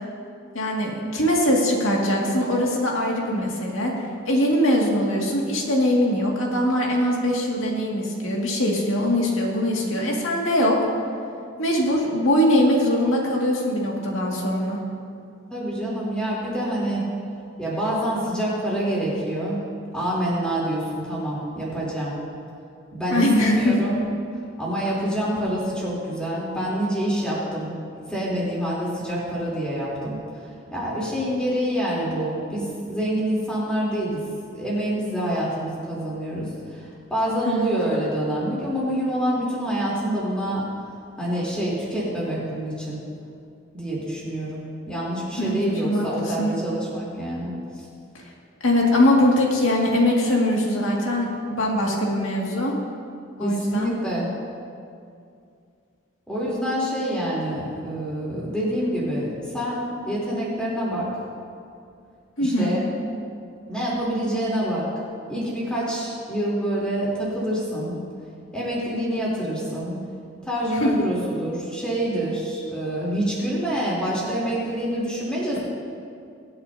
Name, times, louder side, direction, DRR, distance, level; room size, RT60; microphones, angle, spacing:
voice 1, 0.5-3.9 4.3-10.8 11.6-14.8 23.1-23.7 37.4-37.7 45.4-45.6 45.8-46.1 46.4-46.5 48.6-52.8 53.4-53.9 62.4-62.7 70.8-70.9, left 1 dB, 90° left, -2 dB, 2.1 m, -22 dB
voice 2, 15.5-17.0 17.6-19.6 19.9-22.1 22.9-24.1 24.6-27.8 28.1-34.2 34.5-40.7 41.2-43.0 43.7-47.8 53.4-54.3 56.3-61.1 62.4-62.8 63.7-64.9 65.3-68.0 68.5-70.0 70.4-75.6, equal, 5° left, -7 dB, 3.3 m, -26 dB
23.0 x 8.7 x 2.7 m, 2.4 s
head